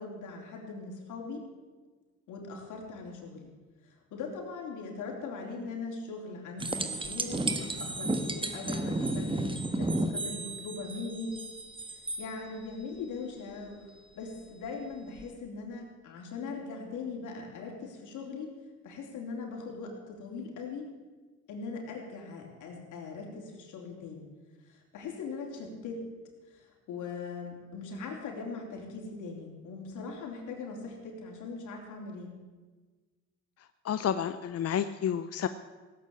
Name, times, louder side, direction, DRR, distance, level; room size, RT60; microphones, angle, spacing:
voice 1, 0.0-1.4 2.3-3.5 3.8-9.5 9.8-11.4 12.2-13.9 14.2-18.5 18.8-20.9 21.5-24.3 24.7-26.0 26.5-32.3, left 4 dB, 85° left, 0 dB, 3.7 m, -40 dB
sound 1, 6.6-12.2 15.2-15.3, right 2 dB, 15° right, 1.5 m, -33 dB
voice 2, 33.8-35.5, left 9 dB, 55° left, 11 dB, 0.7 m, -30 dB
17.0 x 8.4 x 8.5 m, 1.3 s
cardioid pair, 90°, 30 cm